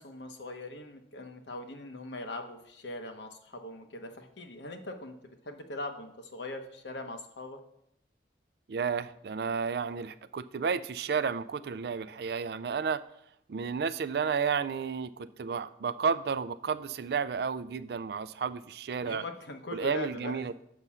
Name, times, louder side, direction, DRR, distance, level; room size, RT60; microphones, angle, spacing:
voice 1, 0.0-5.1 5.4-7.6 19.0-20.5, left 2 dB, 75° left, 5 dB, 1.1 m, -41 dB
voice 2, 8.7-13.0 13.5-19.2 19.7-20.5, right 6 dB, 60° right, 14 dB, 0.3 m, -32 dB
6.7 x 6.1 x 5.6 m, 0.74 s
head